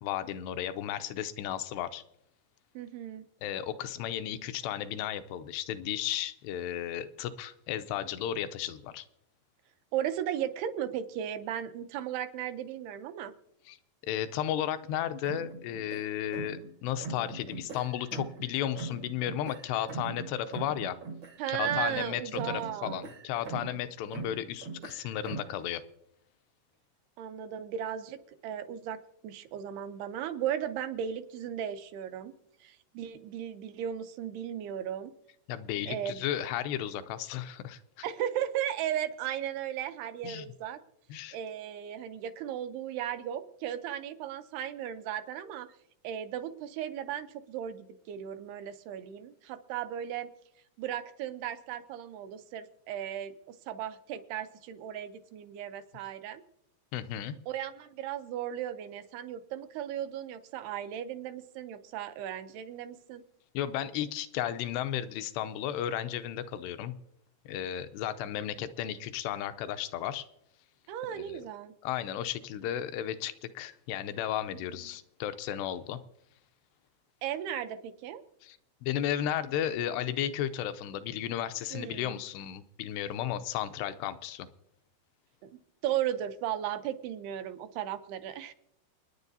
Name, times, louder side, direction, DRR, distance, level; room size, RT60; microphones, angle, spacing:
voice 1, 0.0-2.0 3.4-9.0 13.7-13.8 14.0-21.0 21.5-25.8 35.5-38.1 40.2-40.5 41.1-41.4 56.9-57.4 63.5-67.0 67.5-70.3 71.1-71.5 71.8-76.0 78.4-84.5, left 11 dB, 85° left, 11 dB, 2.7 m, -34 dB
voice 2, 2.8-3.2 9.9-13.3 21.4-23.0 27.2-29.0 29.2-32.3 32.6-35.1 35.9-36.2 38.0-40.8 41.3-45.7 46.0-50.3 50.8-56.4 57.5-63.2 70.9-71.7 77.2-78.2 81.7-82.2 85.4-85.5 85.8-88.5, right 10 dB, 80° right, 9 dB, 2.5 m, -36 dB
sound 1, 15.2-16.7 17.0-18.5 18.8-22.1 22.3-23.8 24.1-25.6, right 4 dB, 65° right, 1.1 m, -41 dB
29.0 x 9.8 x 2.7 m, 0.78 s
omnidirectional pair, 4.9 m